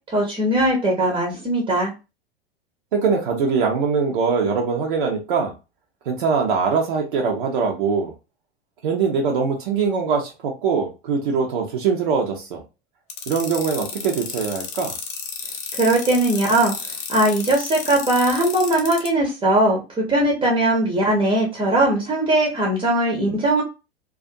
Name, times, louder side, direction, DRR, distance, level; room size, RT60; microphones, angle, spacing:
voice 1, 0.1-1.9 15.7-23.6, right 1 dB, 20° right, 0 dB, 0.7 m, -20 dB
voice 2, 2.9-5.5 6.1-8.1 8.8-12.6 13.3-14.9, right 5 dB, 60° right, 1 dB, 0.7 m, -22 dB
sound 1, 13.1-19.1, left 6 dB, 25° left, 0.6 m, -31 dB
2.4 x 2.4 x 2.5 m, 0.27 s
figure-of-eight pair, 85°, 30 cm